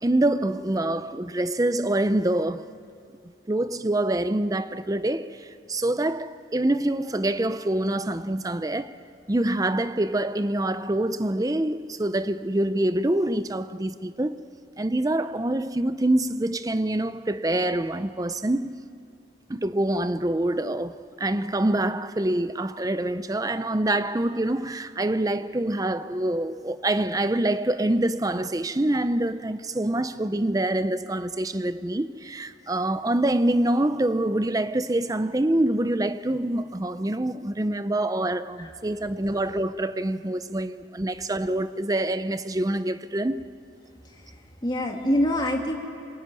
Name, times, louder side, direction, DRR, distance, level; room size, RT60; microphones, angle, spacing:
voice 1, 0.0-2.7 3.5-8.9 9.3-14.4 14.8-18.8 19.5-43.5, right 1 dB, 20° right, 0.6 m, -25 dB
voice 2, 44.0-45.7, left 1 dB, 25° left, 2.6 m, -26 dB
27.0 x 22.0 x 9.6 m
head